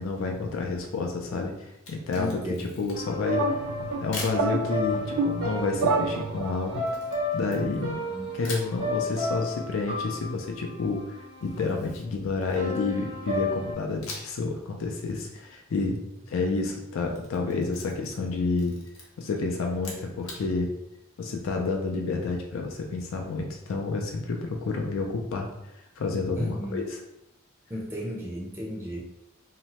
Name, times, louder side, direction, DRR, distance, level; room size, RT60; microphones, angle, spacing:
voice 1, 0.0-3.4 4.0-6.8 7.3-8.0 8.3-16.0 16.3-18.7 19.2-20.7 21.2-26.8, left 3 dB, 65° left, 2 dB, 0.4 m, -29 dB
Camera, 1.7-3.2 4.1-4.4 6.9-8.0 8.4-8.7 11.4-12.9 14.0-14.5 14.8-14.9 16.9-18.3 18.5-19.0 19.7-20.4, left 3 dB, 85° left, 0.8 m, -41 dB
voice 2, 2.1-2.7 7.8-7.9 8.1-8.3 16.5-16.6 26.3-26.8 27.7-29.0, equal, 10° right, -3 dB, 0.5 m, -34 dB
sound 1, 2.9-11.8 12.6-13.7, left 2 dB, 70° right, 0.9 m, -33 dB
sound 2, 3.3-6.8, right 4 dB, 90° right, 0.3 m, -29 dB
2.8 x 2.1 x 2.8 m, 0.86 s
head